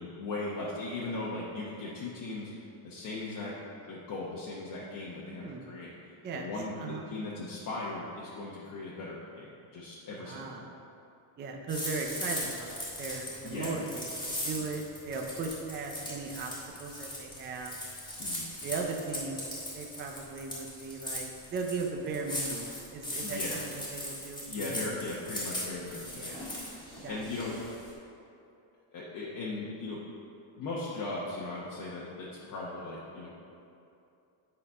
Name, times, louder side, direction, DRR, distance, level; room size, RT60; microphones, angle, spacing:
voice 1, 0.0-2.5 2.8-3.5 3.9-5.9 6.3-10.7 13.4-13.7 18.2-18.5 23.2-23.6 24.5-26.7 27.0-27.5 28.9-30.0 30.6-33.3, left 2 dB, 40° left, -5 dB, 0.9 m, -38 dB
voice 2, 5.3-5.6 6.2-6.5 6.8-7.1 10.2-10.7 11.4-17.8 18.6-19.4 19.7-25.0 26.1-26.5 27.0-27.5, right 4 dB, 25° right, 1 dB, 0.4 m, -38 dB
sound 1, 11.7-27.9, left 1 dB, 10° left, 1.6 m, -39 dB
8.6 x 4.2 x 5.4 m, 2.7 s
cardioid pair, 165°, 48 cm